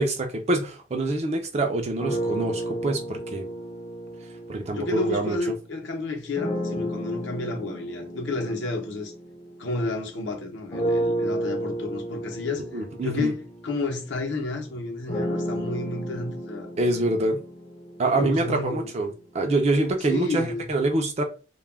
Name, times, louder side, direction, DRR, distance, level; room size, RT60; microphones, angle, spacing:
voice 1, 0.0-3.4 4.5-5.4 12.7-13.3 16.8-17.4 18.0-21.2, right 2 dB, 30° right, 0.4 m, -25 dB
sound 1, 2.0-5.5 6.3-10.1 10.7-18.7, right 1 dB, 25° left, 0.5 m, -32 dB
voice 2, 4.7-9.1 9.6-16.7 18.1-18.9 20.1-20.7, left 2 dB, 60° left, 0.7 m, -31 dB
2.2 x 2.1 x 3.2 m
head